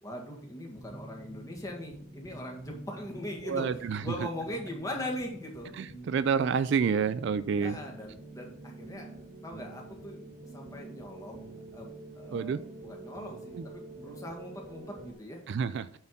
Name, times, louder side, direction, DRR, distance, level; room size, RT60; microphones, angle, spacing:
voice 1, 0.0-5.7 6.9-7.0 7.6-10.3 10.5-15.4, left 1 dB, 15° left, 0 dB, 1.6 m, -41 dB
sound 1, 0.7-15.1, right 2 dB, 40° right, 1.8 m, -47 dB
voice 2, 3.5-4.0 6.1-7.7 12.3-12.6 15.5-15.8, right 6 dB, 55° right, 14 dB, 0.3 m, -28 dB
8.6 x 4.4 x 5.4 m, 0.63 s
head